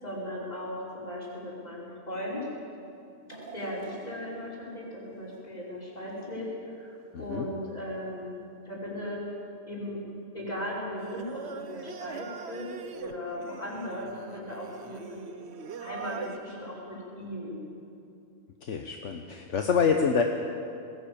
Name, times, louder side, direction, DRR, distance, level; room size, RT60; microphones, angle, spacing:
voice 1, 0.0-2.5 3.5-6.5 6.8-8.4 8.7-9.2 9.7-10.0 10.3-15.2 15.8-17.7, left 1 dB, 30° left, -5 dB, 5.5 m, -37 dB
sound 1, 3.3-6.4 6.9-7.0 8.0-8.1, right 3 dB, 35° right, 2.8 m, -49 dB
voice 2, 7.1-7.5 18.6-20.2, left 6 dB, 70° left, 4 dB, 1.4 m, -26 dB
Singing, 11.0-16.4, right 6 dB, 60° right, 1.1 m, -42 dB
20.0 x 17.0 x 8.7 m, 2.6 s
omnidirectional pair, 1.3 m